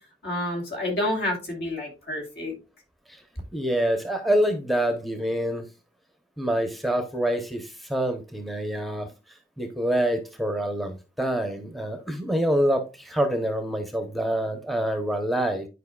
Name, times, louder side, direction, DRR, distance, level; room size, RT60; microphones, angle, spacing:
voice 1, 0.2-2.5, left 1 dB, 65° left, 2.8 m, -29 dB
voice 2, 3.5-5.7 6.4-9.1 9.6-15.7, right 1 dB, ahead, 0.8 m, -26 dB
11.0 x 4.9 x 2.3 m
head